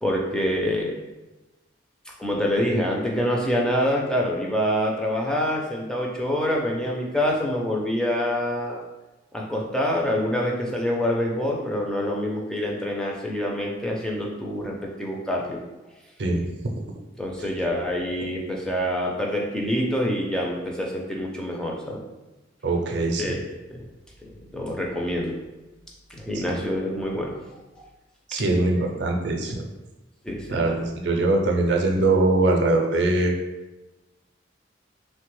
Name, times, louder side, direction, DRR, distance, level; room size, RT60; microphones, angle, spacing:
voice 1, 0.0-1.0 2.2-8.8 9.3-15.6 17.2-22.0 23.2-23.4 23.7-23.8 24.2-25.4 26.1-27.4 30.2-30.6, equal, 5° left, -2 dB, 0.4 m, -26 dB
voice 2, 22.6-23.4 26.3-26.6 28.3-29.6 30.5-33.3, right 2 dB, 60° right, 2 dB, 0.4 m, -22 dB
3.2 x 2.2 x 3.0 m, 1.1 s
head